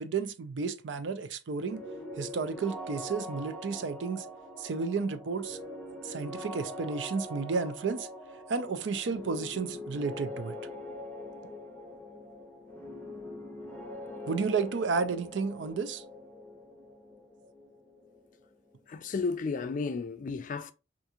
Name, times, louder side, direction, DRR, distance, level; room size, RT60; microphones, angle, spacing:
voice 1, 0.0-1.8 2.2-4.3 4.6-5.6 6.0-8.1 8.5-10.6 14.3-16.0, right 4 dB, 80° right, 0.4 m, -32 dB
sound 1, 1.6-19.3, left 1 dB, 10° left, 0.7 m, -43 dB
voice 2, 18.9-20.7, left 4 dB, 45° left, 0.4 m, -33 dB
3.6 x 2.5 x 2.8 m
head